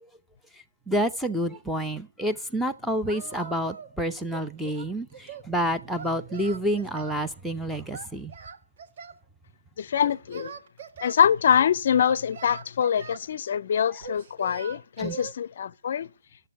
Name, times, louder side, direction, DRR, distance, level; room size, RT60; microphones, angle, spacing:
voice 1, 0.9-8.3 15.0-15.2, equal, ahead, 0.6 m, -29 dB
Singing, 3.1-4.0 4.3-5.5 5.9-7.2 7.9-9.2 9.9-11.2 12.0-13.3 14.0-15.3, right 5 dB, 40° right, 1.5 m, -42 dB
voice 2, 9.8-10.5 11.0-16.1, left 8 dB, 40° left, 0.5 m, -24 dB
12.0 x 7.6 x 8.9 m
figure-of-eight pair, 155°, 0 cm